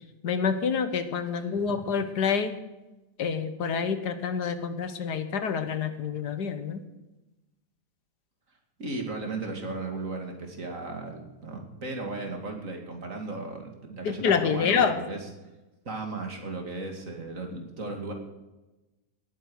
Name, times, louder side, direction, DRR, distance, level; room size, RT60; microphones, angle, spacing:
voice 1, 0.2-2.5 3.2-6.8 14.0-15.0, left 6 dB, 75° left, 10 dB, 1.7 m, -27 dB
voice 2, 8.8-15.3 15.8-18.1, right 3 dB, 50° right, 3 dB, 2.7 m, -36 dB
18.5 x 8.8 x 6.4 m, 1.0 s
omnidirectional pair, 1.8 m